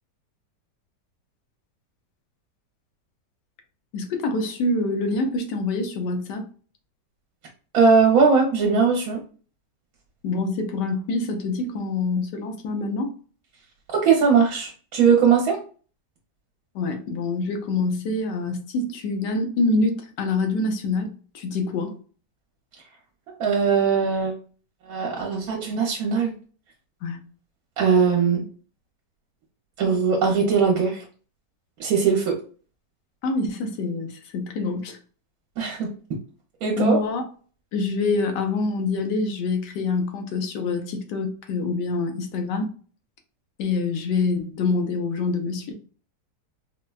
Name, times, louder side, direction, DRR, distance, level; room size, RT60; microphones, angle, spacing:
voice 1, 3.9-6.4 10.2-13.1 16.7-22.0 27.0-27.2 33.2-35.0 36.8-37.3 37.7-42.7 43.6-45.7, left 3 dB, 85° left, 1.3 m, -26 dB
voice 2, 7.7-9.2 13.9-15.6 23.4-24.3 24.9-26.3 27.8-28.4 29.8-31.0 31.8-32.4 35.6-35.9 36.6-37.0, right 5 dB, 65° right, 1.2 m, -20 dB
4.3 x 2.1 x 2.3 m
omnidirectional pair, 1.8 m